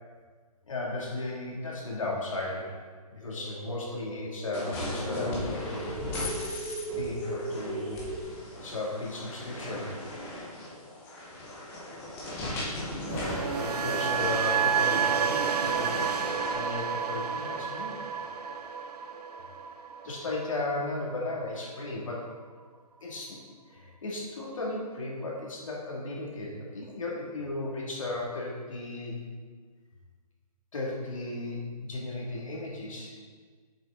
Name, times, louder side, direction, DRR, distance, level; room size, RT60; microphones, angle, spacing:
voice 1, 0.7-2.8 3.1-6.4 7.0-8.0 8.6-9.9 13.5-16.1 16.5-18.0 20.0-22.3 23.0-29.2 30.7-33.1, left 2 dB, 55° left, -3 dB, 2.0 m, -35 dB
sound 1, 3.2-8.2, right 2 dB, 20° right, 1.1 m, -38 dB
sound 2, 4.5-16.5, left 1 dB, 10° left, 0.8 m, -37 dB
sound 3, 13.1-21.2 21.5-21.8, right 7 dB, 80° right, 0.6 m, -30 dB
7.2 x 5.7 x 3.7 m, 1.5 s
hypercardioid pair, 165°, 20 cm